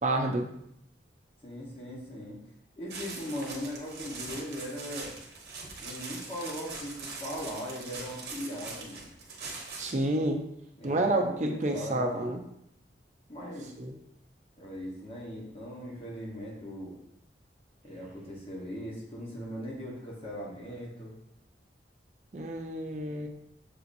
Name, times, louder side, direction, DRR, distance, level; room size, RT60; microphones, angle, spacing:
voice 1, 0.0-0.5 9.8-10.4 10.8-12.4 13.8-13.9 22.3-23.3, right 1 dB, 40° right, 3 dB, 0.5 m, -29 dB
voice 2, 1.4-2.4 2.8-5.1 5.8-9.1 10.8-12.2 13.3-13.8 14.6-17.0 17.8-21.1, equal, 30° left, -4 dB, 1.1 m, -39 dB
sound 1, 2.9-10.0, right 3 dB, 60° right, 0.9 m, -42 dB
6.8 x 2.8 x 2.6 m, 0.74 s
head